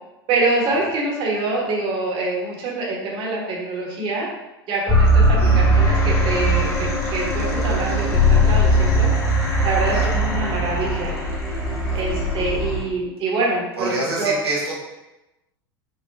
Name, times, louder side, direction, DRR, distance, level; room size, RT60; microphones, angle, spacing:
voice 1, 0.3-4.3 4.7-9.1 9.6-11.2 11.9-13.9 14.2-14.3, right 3 dB, 40° right, -3 dB, 1.4 m, -25 dB
sound 1, 4.9-12.8, equal, 20° left, 1.5 m, -19 dB
voice 2, 5.3-5.7 9.9-10.2 11.9-12.1 13.8-14.8, right 2 dB, 85° right, -5 dB, 1.2 m, -27 dB
5.6 x 2.4 x 3.4 m, 0.98 s
hypercardioid pair, 90°, 13 cm